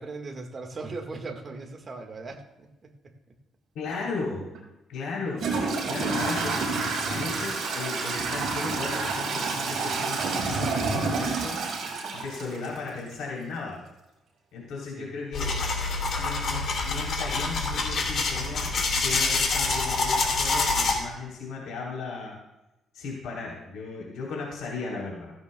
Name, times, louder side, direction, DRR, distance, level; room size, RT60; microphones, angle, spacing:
voice 1, 0.0-2.9 12.6-13.0 15.0-15.1, right 3 dB, 30° right, 3 dB, 1.6 m, -39 dB
voice 2, 3.8-4.5 4.9-5.6 5.9-6.6 7.1-11.6 12.1-13.8 14.5-15.5 16.2-22.4 22.9-25.3, left 4 dB, 85° left, -3 dB, 3.4 m, -35 dB
Toilet flush / Trickle dribble, 4.5-4.6 5.3-13.1, right 4 dB, 60° right, 4.8 m, -29 dB
sound 1, 15.3-21.0, left 3 dB, 50° left, 2.6 m, -26 dB
16.0 x 15.0 x 2.3 m, 0.97 s
cardioid pair, 150°, 0 cm